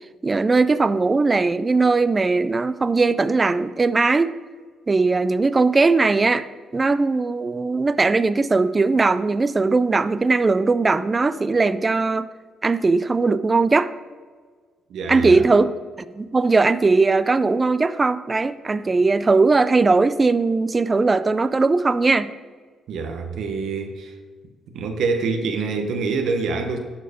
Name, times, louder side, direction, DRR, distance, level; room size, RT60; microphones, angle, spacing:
voice 1, 0.2-4.3 4.9-6.5 6.7-12.3 12.6-13.9 15.1-15.7 16.1-22.3, right 3 dB, 25° right, 14 dB, 0.4 m, -19 dB
voice 2, 14.9-15.5 22.9-24.2 24.7-26.8, right 4 dB, 75° right, 5 dB, 0.9 m, -26 dB
11.5 x 4.5 x 5.0 m, 1.5 s
cardioid pair, 90°, 0 cm